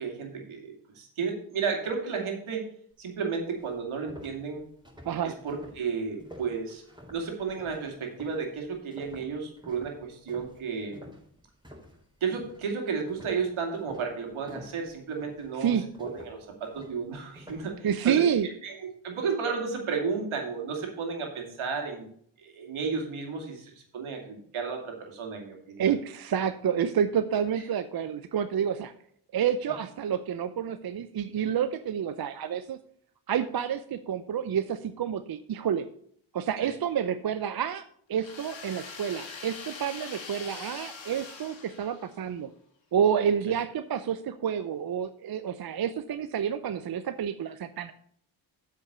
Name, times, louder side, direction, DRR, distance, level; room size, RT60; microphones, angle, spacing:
voice 1, 0.0-2.6 3.0-4.7 5.2-6.8 7.1-11.1 12.2-18.2 18.6-22.1 22.4-25.9 36.6-36.7 43.5-43.6, right 5 dB, 70° right, 2 dB, 2.5 m, -33 dB
sound 1, 3.1-3.2 3.6-12.0 12.3-12.7 13.1-17.8, equal, 10° right, 4.4 m, -49 dB
voice 2, 17.8-18.5 25.8-28.9 29.3-32.8 33.3-35.9 36.3-37.8 38.1-42.5 42.9-47.9, right 8 dB, 45° right, 11 dB, 0.7 m, -29 dB
sound 2, 38.2-42.3, left 4 dB, 65° left, 2.5 m, -43 dB
8.0 x 5.8 x 6.7 m, 0.63 s
supercardioid pair, 50°, 50 cm